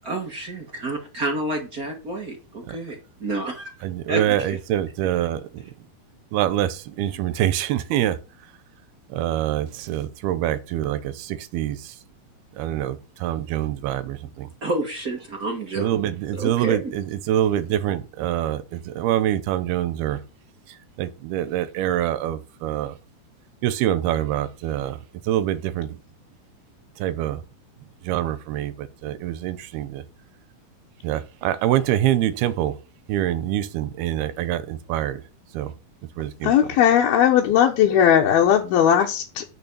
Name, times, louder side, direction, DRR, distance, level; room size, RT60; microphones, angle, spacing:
voice 1, 0.0-3.7 4.1-4.6 14.6-15.9 16.3-17.0, right 2 dB, 55° right, 0.9 m, -29 dB
voice 2, 3.8-5.6 6.3-8.2 9.1-11.8 12.6-14.5 15.8-20.2 21.0-22.9 23.6-25.0 25.3-26.0 27.0-27.4 28.1-30.0 31.0-32.7 33.1-35.2 35.5-35.7 36.2-36.5, right 12 dB, 80° right, 2.7 m, -25 dB
voice 3, 36.4-39.5, left 9 dB, 75° left, 2.9 m, -18 dB
9.6 x 6.3 x 5.3 m
omnidirectional pair, 4.5 m